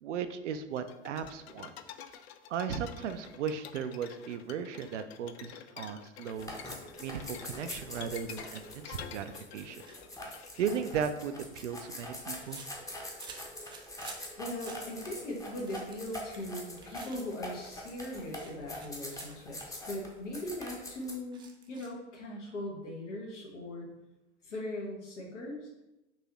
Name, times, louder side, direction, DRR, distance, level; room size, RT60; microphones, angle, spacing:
voice 1, 0.0-1.7 2.5-6.5 7.0-9.8 10.6-12.6, right 7 dB, 75° right, 10 dB, 0.5 m, -36 dB
sound 1, 0.8-11.2, left 9 dB, 60° left, 0.4 m, -48 dB
sound 2, 6.3-21.1, left 1 dB, 10° left, 0.8 m, -44 dB
sound 3, 9.8-10.0 11.4-14.3 14.6-14.9 15.4-17.2 17.6-17.9 18.3-19.3 19.8-19.9 20.2-20.4 21.0-22.0, right 5 dB, 15° right, 0.3 m, -52 dB
voice 2, 14.4-21.4 21.7-23.9 24.4-25.7, left 1 dB, 75° left, -2 dB, 1.4 m, -40 dB
5.4 x 2.7 x 3.0 m, 0.97 s
figure-of-eight pair, 90°, 36 cm